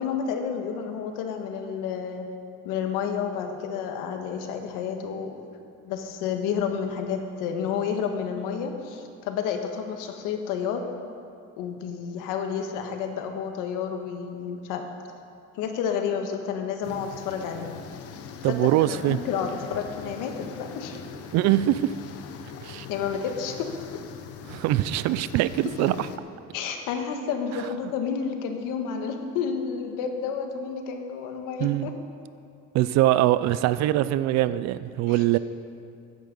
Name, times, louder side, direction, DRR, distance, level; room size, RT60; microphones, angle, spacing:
voice 1, 0.0-2.3 2.6-5.4 5.8-10.8 11.6-14.8 15.5-17.7 18.5-21.0 22.9-23.7 26.5-31.9 35.1-35.2, left 7 dB, 80° left, 5 dB, 1.5 m, -30 dB
sound 1, 16.8-26.2, left 7 dB, 50° left, 0.9 m, -42 dB
voice 2, 18.4-19.2 21.3-21.9 22.6-22.9 24.5-26.1 27.5-27.6 31.6-31.9 32.7-35.4, right 14 dB, 60° right, 16 dB, 0.5 m, -23 dB
14.5 x 10.5 x 5.3 m, 2.5 s
cardioid pair, 165°, 31 cm